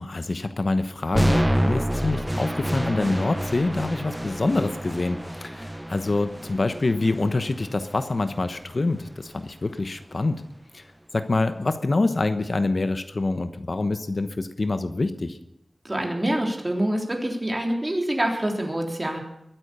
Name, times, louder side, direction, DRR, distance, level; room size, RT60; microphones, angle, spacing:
voice 1, 0.0-10.4 10.7-10.8 11.1-15.4, left 2 dB, 55° left, 9 dB, 1.0 m, -26 dB
sound 1, 1.1-9.2, equal, 10° right, 0.6 m, -28 dB
voice 2, 15.8-19.2, right 1 dB, 25° right, 1 dB, 3.4 m, -26 dB
22.0 x 9.1 x 6.8 m, 0.85 s
wide cardioid pair, 65°, 0 cm